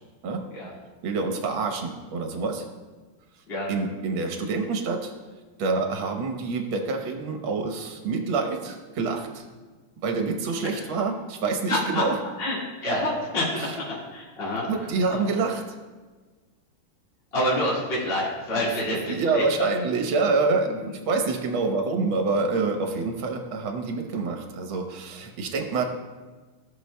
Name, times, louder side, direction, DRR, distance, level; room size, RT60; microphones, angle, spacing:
voice 1, 1.0-2.7 3.7-5.1 5.6-9.4 10.0-12.2 13.6-13.7 14.7-15.8 19.1-25.8, right 4 dB, 70° right, 4 dB, 1.8 m, -27 dB
voice 2, 11.7-12.1 12.4-14.7 15.1-15.2 17.3-19.7 20.8-20.9, left 1 dB, 30° left, -7 dB, 2.0 m, -27 dB
17.0 x 6.2 x 2.2 m, 1.3 s
omnidirectional pair, 2.4 m